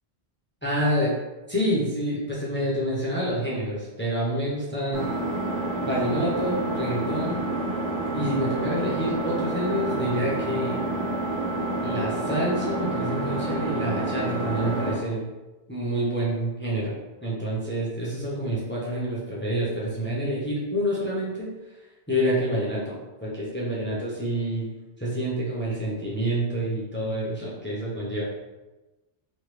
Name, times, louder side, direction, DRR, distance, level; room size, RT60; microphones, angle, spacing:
voice 1, 0.6-1.2 1.5-5.1 5.8-7.5 8.1-10.8 11.8-15.3 15.7-16.9 17.2-21.5 22.1-24.7 25.0-28.2, equal, 15° left, -7 dB, 0.6 m, -28 dB
Engine, 4.9-14.9, right 2 dB, 80° right, 1.0 m, -28 dB
3.1 x 2.3 x 3.2 m, 1.1 s
omnidirectional pair, 1.1 m